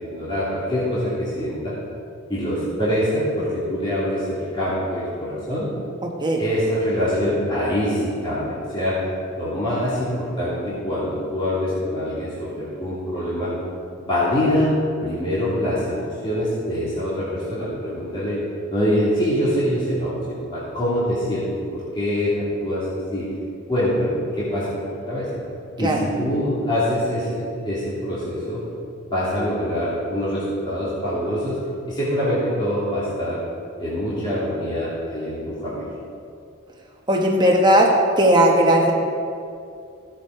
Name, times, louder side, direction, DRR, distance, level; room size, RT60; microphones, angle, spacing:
voice 1, 0.0-1.7 2.3-5.7 6.4-9.0 9.3-13.5 14.0-14.7 15.0-18.4 18.7-23.3 23.7-24.7 25.1-25.3 25.8-28.6 29.1-31.6 31.9-33.4 33.8-35.9, equal, 20° left, -11 dB, 3.0 m, -24 dB
voice 2, 37.1-37.9 38.2-38.9, equal, 20° right, -1 dB, 1.3 m, -16 dB
16.5 x 7.5 x 4.8 m, 2.5 s
head